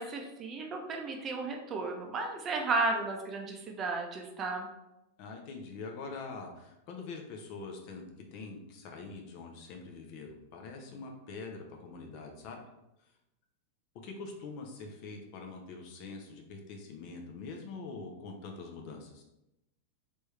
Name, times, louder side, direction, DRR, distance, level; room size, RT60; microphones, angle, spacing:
voice 1, 0.0-4.7, right 3 dB, 25° right, 2 dB, 0.7 m, -34 dB
voice 2, 5.2-8.0 8.3-12.6 14.0-19.2, left 4 dB, 45° left, 2 dB, 0.7 m, -44 dB
3.5 x 3.1 x 3.2 m, 0.90 s
figure-of-eight pair, 90°, 0 cm